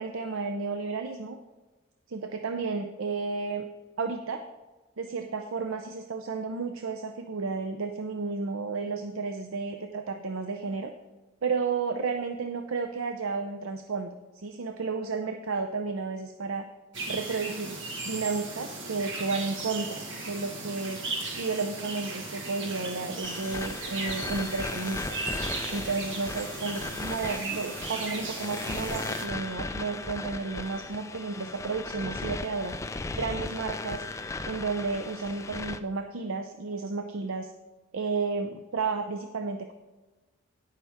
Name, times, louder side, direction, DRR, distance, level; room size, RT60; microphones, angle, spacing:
voice 1, 0.0-1.4 2.1-3.7 4.0-4.4 5.0-10.9 11.4-16.6 17.1-17.8 18.0-21.0 21.4-25.0 25.7-32.7 33.2-34.0 34.4-37.5 37.9-39.7, right 4 dB, 75° right, 6 dB, 0.6 m, -32 dB
sound 1, 16.9-29.2, right 3 dB, 60° right, 1.6 m, -37 dB
sound 2, 23.2-35.8, left 3 dB, 15° left, 0.3 m, -37 dB
16.5 x 5.7 x 3.6 m, 1.2 s
head